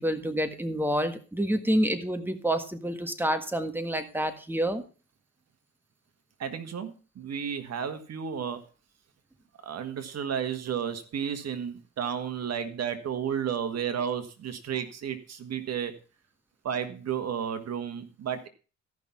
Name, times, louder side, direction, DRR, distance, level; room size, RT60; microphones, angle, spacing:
voice 1, 0.0-4.8, equal, 5° right, 8 dB, 1.6 m, -28 dB
voice 2, 6.4-8.6 9.6-15.9 16.6-18.5, right 8 dB, 55° right, 9 dB, 1.7 m, -32 dB
14.0 x 6.0 x 5.5 m, 0.36 s
cardioid pair, 90°, 30 cm